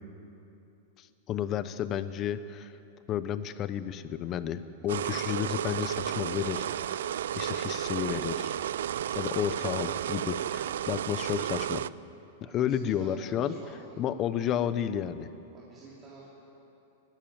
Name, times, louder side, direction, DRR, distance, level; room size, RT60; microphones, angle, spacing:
voice 1, 1.0-2.7 3.1-7.0 7.4-8.6 9.2-11.9 12.5-13.5 14.0-15.3, left 9 dB, 25° left, 13 dB, 0.8 m, -32 dB
sound 1, 4.9-11.9, right 10 dB, 80° right, 0.4 m, -32 dB
voice 2, 12.4-14.0 15.5-16.3, right 3 dB, 20° right, -6 dB, 3.0 m, -49 dB
20.0 x 14.5 x 9.4 m, 2.9 s
supercardioid pair, 160°, 0 cm